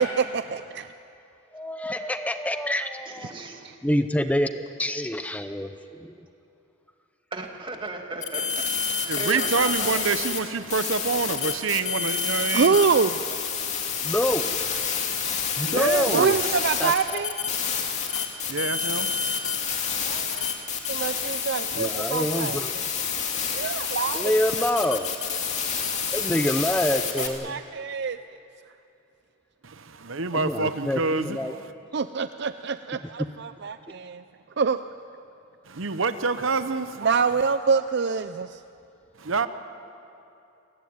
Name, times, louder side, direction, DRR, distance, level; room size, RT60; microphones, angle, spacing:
voice 1, 0.2-0.6 3.6-3.7 12.5-13.4 16.1-17.5 20.0-20.5 20.9-22.8 23.5-24.3 27.2-28.2 31.9-34.2 34.6-34.8 37.0-38.6, right 5 dB, 55° right, 0.5 m, -26 dB
voice 2, 1.5-3.3 3.8-5.7 6.0-6.1 14.0-14.8 15.6-16.4 16.8-17.3 18.1-18.2 21.8-22.7 24.1-25.1 26.1-27.6 30.3-31.5, left 1 dB, 5° left, 0.6 m, -27 dB
voice 3, 3.1-3.6 7.3-10.0, right 2 dB, 25° right, 2.2 m, -35 dB
sound 1, 8.2-10.4 10.7-27.3, left 6 dB, 35° left, 2.6 m, -28 dB
voice 4, 9.0-12.8 15.7-16.6 18.5-19.8 29.6-31.7 35.6-37.1 39.2-39.5, right 4 dB, 75° right, 0.9 m, -27 dB
28.5 x 17.0 x 9.5 m
head